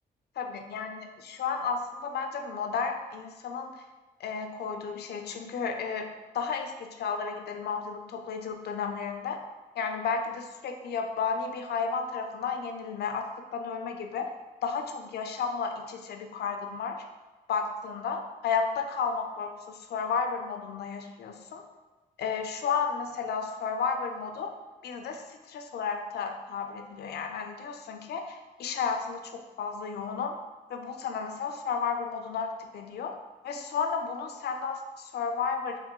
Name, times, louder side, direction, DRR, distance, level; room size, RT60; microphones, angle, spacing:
voice 1, 0.4-3.8 4.2-9.4 9.8-13.3 13.5-14.3 14.6-17.0 17.5-21.6 22.2-24.5 24.8-30.4 30.7-33.1 33.4-35.8, left 5 dB, 70° left, 5 dB, 0.5 m, -33 dB
3.5 x 3.3 x 3.0 m, 1.2 s
cardioid pair, 75°, 18 cm